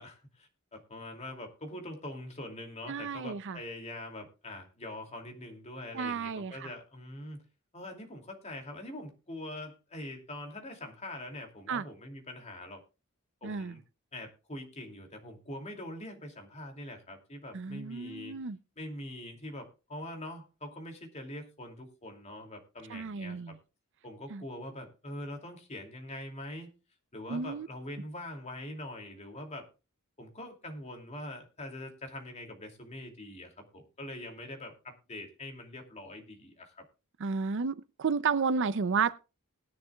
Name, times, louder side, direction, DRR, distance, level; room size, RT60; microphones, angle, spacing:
voice 1, 0.0-7.5 7.7-12.8 13.4-13.8 14.1-18.4 18.8-23.6 24.0-26.7 27.1-29.7 30.2-36.9, left 1 dB, 30° left, 2.6 m, -43 dB
voice 2, 2.9-3.6 5.9-6.5 11.7-11.8 13.4-13.7 17.5-18.6 22.9-23.5 24.3-24.4 27.3-27.7 37.2-39.2, right 5 dB, 55° right, 0.5 m, -32 dB
19.0 x 10.5 x 2.3 m
head